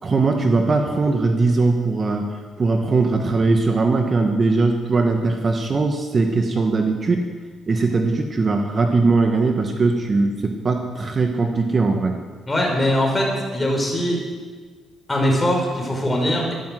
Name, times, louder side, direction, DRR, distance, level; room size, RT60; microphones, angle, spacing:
voice 1, 0.0-2.3 2.6-7.2 7.7-12.2, right 3 dB, 35° right, 4 dB, 1.5 m, -20 dB
voice 2, 12.5-14.2 15.1-16.5, equal, 20° left, 0 dB, 5.1 m, -21 dB
13.0 x 12.0 x 7.7 m, 1.5 s
cardioid pair, 90°, 0 cm